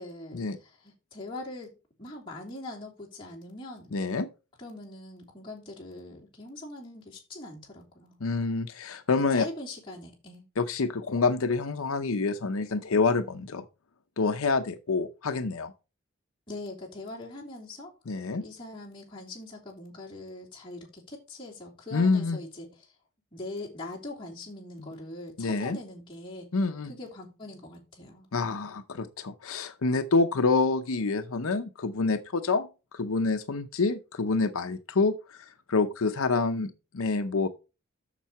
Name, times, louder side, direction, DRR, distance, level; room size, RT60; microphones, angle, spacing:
voice 1, 0.0-1.7 2.0-3.9 4.6-8.2 9.3-10.4 16.5-17.9 18.4-22.9 23.3-26.5 26.9-28.3, left 2 dB, 25° left, 3.1 m, -42 dB
voice 2, 3.9-4.3 8.2-9.5 10.6-13.6 14.2-15.7 18.1-18.4 21.9-22.4 25.4-25.8 26.5-26.9 28.3-32.7 32.9-37.5, left 4 dB, 85° left, 0.7 m, -27 dB
7.3 x 6.7 x 4.7 m
head